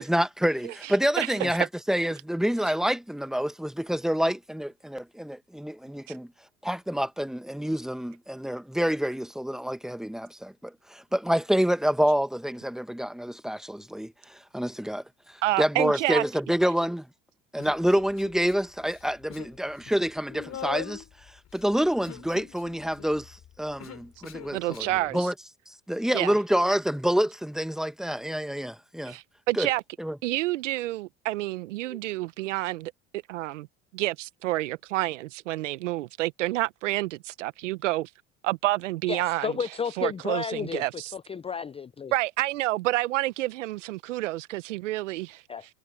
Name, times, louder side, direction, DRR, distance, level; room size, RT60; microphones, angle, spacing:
voice 1, 0.0-6.3 6.6-15.0 15.6-17.1 17.5-21.0 21.5-24.8 25.1-25.3 25.9-29.1 29.5-29.7 30.0-30.1, equal, ahead, 1.2 m, -27 dB
voice 2, 0.6-1.4 15.4-16.2 24.5-25.3 26.1-26.3 29.0-29.8 30.2-32.9 33.3-33.7 33.9-38.1 38.4-39.6 40.0-41.1 42.1-45.4, right 17 dB, 85° right, 1.1 m, -29 dB
Human voice, 17.6-18.5 18.8-19.6 19.8-25.0, left 10 dB, 45° left, 4.8 m, -42 dB
voice 3, 39.1-40.8 41.1-42.1 45.5-45.7, left 6 dB, 15° left, 0.5 m, -32 dB
hypercardioid pair, 75°, 36 cm